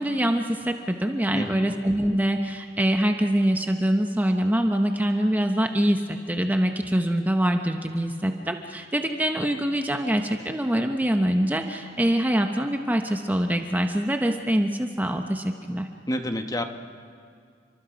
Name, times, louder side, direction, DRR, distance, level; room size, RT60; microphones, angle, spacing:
voice 1, 0.0-15.9, right 1 dB, 10° right, 4 dB, 0.8 m, -24 dB
voice 2, 1.3-1.8 16.1-16.6, left 1 dB, 20° left, 6 dB, 1.2 m, -29 dB
29.5 x 24.0 x 5.1 m, 2.2 s
head